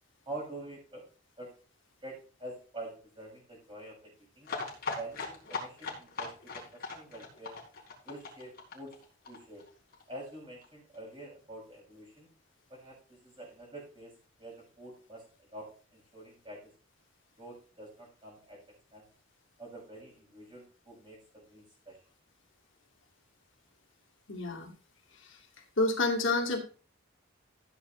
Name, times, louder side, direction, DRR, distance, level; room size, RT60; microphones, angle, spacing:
voice 1, 0.3-1.0 1.4-1.5 2.0-4.5 5.0-7.6 8.0-8.9 9.3-9.6 10.1-12.3 12.7-14.1 14.4-15.2 15.5-16.6 17.4-18.6 18.9-19.0 19.6-22.0, right 1 dB, 25° right, -3 dB, 6.3 m, -46 dB
sound 1, 4.4-10.0 10.3-10.4 10.6-10.7 10.9-11.0, left 4 dB, 45° left, 4.2 m, -39 dB
voice 2, 24.3-24.7 25.8-26.6, left 2 dB, 65° left, 1 dB, 2.5 m, -28 dB
15.0 x 8.2 x 3.2 m, 0.38 s
head